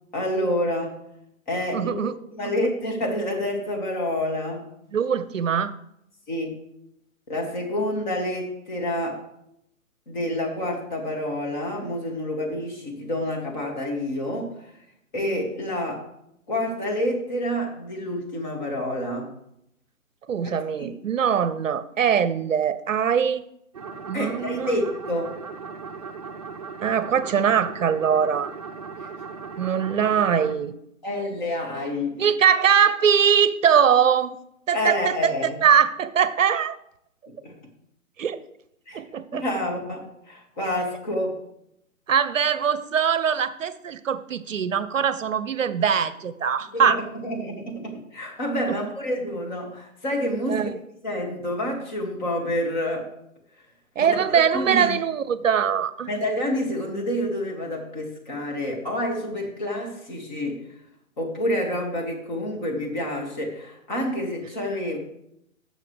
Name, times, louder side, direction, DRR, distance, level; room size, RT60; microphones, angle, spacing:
voice 1, 0.1-1.0 1.5-4.7 6.3-6.5 7.3-9.2 10.1-14.8 15.1-16.1 16.5-19.3 20.4-21.0 24.1-25.3 31.0-32.3 34.7-35.6 37.3-37.6 38.9-39.0 39.3-41.4 46.7-50.7 51.0-53.1 54.0-54.2 54.5-54.9 56.1-60.8 61.2-65.0, left 1 dB, 35° left, 0 dB, 2.3 m, -28 dB
voice 2, 1.7-2.1 4.9-5.8 20.3-23.4 24.1-24.7 26.8-28.5 29.6-30.7 32.1-34.3 34.7-35.3 35.6-36.8 38.2-38.4 38.9-39.4 42.1-47.0 48.7-48.8 50.5-50.7 54.0-56.1, right 7 dB, 65° right, 15 dB, 0.7 m, -22 dB
sound 1, 23.7-30.6, right 5 dB, 30° right, 0.6 m, -37 dB
15.0 x 6.6 x 3.4 m, 0.78 s
hypercardioid pair, 160°, 42 cm